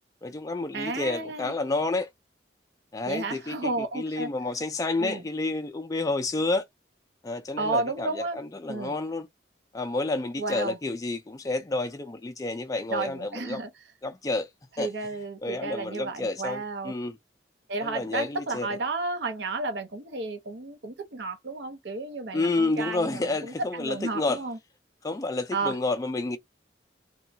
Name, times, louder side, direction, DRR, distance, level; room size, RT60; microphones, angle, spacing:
voice 1, 0.2-2.1 2.9-6.7 7.2-9.3 9.7-13.6 14.0-14.5 14.8-14.9 15.4-17.2 17.8-18.7 22.3-24.4 25.0-26.4, left 2 dB, 20° left, 0.3 m, -30 dB
voice 2, 0.7-1.5 3.1-4.3 5.0-5.2 7.6-8.4 8.7-8.9 10.4-10.8 12.9-13.7 14.8-16.9 17.7-24.6 25.5-25.8, right 3 dB, 75° right, 0.7 m, -32 dB
3.0 x 2.2 x 2.7 m
head